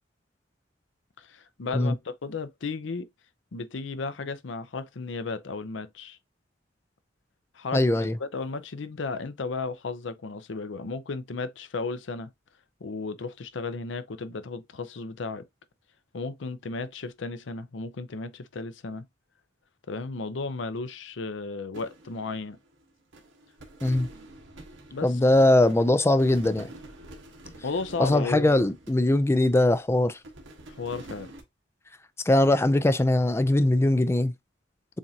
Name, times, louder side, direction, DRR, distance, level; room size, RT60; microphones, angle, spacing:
voice 1, 1.2-3.1 3.5-6.2 7.5-7.8 8.2-12.3 12.8-15.4 16.1-19.1 19.9-22.6 24.9-25.1 27.6-28.5 30.7-31.3, left 4 dB, 70° left, 0.6 m, -34 dB
voice 2, 7.7-8.2 23.8-24.1 25.0-26.7 28.0-30.2 32.3-34.3, left 1 dB, 15° left, 0.4 m, -21 dB
sound 1, 21.7-22.8 23.1-29.8 30.2-31.4, right 1 dB, 80° right, 1.2 m, -47 dB
7.2 x 2.5 x 2.7 m
head